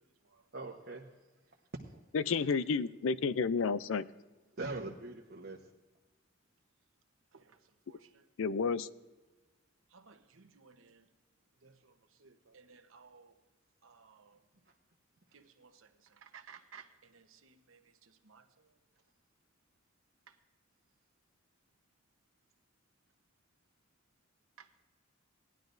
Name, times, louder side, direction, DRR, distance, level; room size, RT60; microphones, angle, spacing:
voice 1, 0.5-1.0 1.5-1.6 1.9-2.0 2.3-2.6 4.6-5.7, right 3 dB, 50° right, 1.0 m, -42 dB
voice 2, 2.1-4.0 8.4-8.9, left 5 dB, 70° left, 0.4 m, -31 dB
voice 3, 7.3-8.3 9.9-11.1 11.6-13.4 13.8-14.4 15.3-18.8 20.3-20.4 24.6-24.7, right 6 dB, 80° right, 1.0 m, -59 dB
18.0 x 11.5 x 2.6 m
head